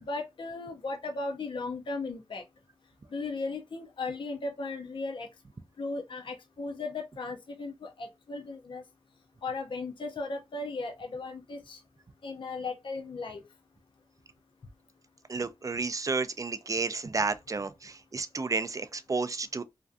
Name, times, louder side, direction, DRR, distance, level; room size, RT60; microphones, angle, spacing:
voice 1, 0.0-2.4 3.1-5.3 5.8-8.8 9.4-11.8 12.2-13.4, left 3 dB, 55° left, 0.4 m, -36 dB
voice 2, 15.3-19.6, right 4 dB, 35° right, 0.3 m, -31 dB
2.5 x 2.2 x 2.4 m
cardioid pair, 40°, 10 cm